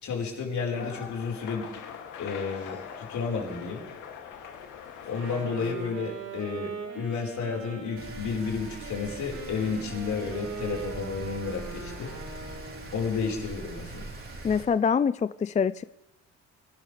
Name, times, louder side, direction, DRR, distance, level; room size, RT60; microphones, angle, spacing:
voice 1, 0.0-1.7 2.2-3.9 5.1-12.1 12.9-14.1, left 5 dB, 70° left, 0 dB, 4.8 m, -32 dB
sound 1, 0.7-5.7, left 7 dB, 90° left, 2.5 m, -42 dB
Wind instrument woodwind instrument, 5.0-13.0, right 4 dB, 80° right, 6.9 m, -41 dB
Rain, 8.0-14.6, right 2 dB, 45° right, 4.9 m, -42 dB
voice 2, 14.4-15.8, left 6 dB, 25° left, 16 dB, 0.4 m, -25 dB
25.5 x 12.5 x 3.4 m, 0.98 s
cardioid pair, 90°, 30 cm